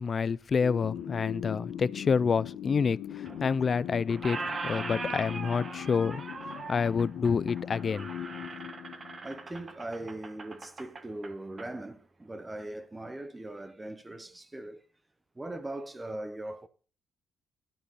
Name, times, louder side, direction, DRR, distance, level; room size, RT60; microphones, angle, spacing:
voice 1, 0.0-6.2 6.7-8.1, left 5 dB, 45° left, 0.4 m, -28 dB
sound 1, 0.6-9.6, left 10 dB, 90° left, 1.0 m, -40 dB
Squeak, 3.2-3.8 4.1-11.7, right 4 dB, 35° right, 1.4 m, -40 dB
voice 2, 9.2-14.8 15.4-16.7, right 1 dB, 15° right, 0.9 m, -40 dB
12.0 x 8.2 x 4.1 m
cardioid pair, 90°, 0 cm